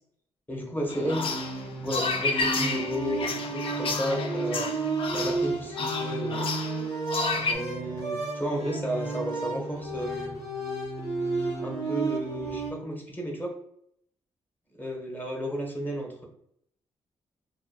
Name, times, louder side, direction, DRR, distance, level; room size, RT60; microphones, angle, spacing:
voice 1, 0.5-1.2 1.8-4.7 5.1-6.5 7.3-10.4 11.6-13.5 14.8-16.3, equal, 15° left, 0 dB, 0.9 m, -33 dB
sound 1, 0.8-12.7, right 3 dB, 85° left, 1.1 m, -32 dB
sound 2, 0.9-7.5, left 3 dB, 55° left, 0.5 m, -31 dB
2.8 x 2.2 x 2.3 m, 0.71 s
cardioid pair, 65°, 11 cm